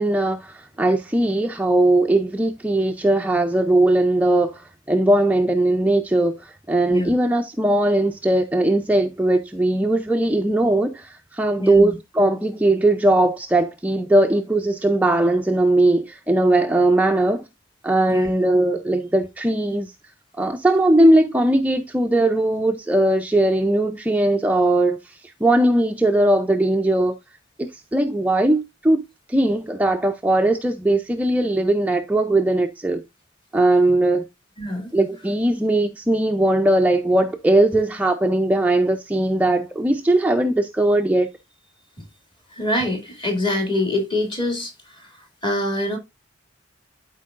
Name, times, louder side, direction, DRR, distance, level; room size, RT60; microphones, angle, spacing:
voice 1, 0.0-17.5 17.8-19.9 20.4-27.2 27.6-29.0 29.3-33.0 33.5-34.3 34.9-41.3, right 1 dB, 10° right, 0.4 m, -19 dB
voice 2, 11.6-12.0 18.1-18.3 34.6-34.9 42.5-45.2 45.4-46.0, left 1 dB, 25° left, 2.3 m, -25 dB
12.0 x 4.5 x 2.4 m
head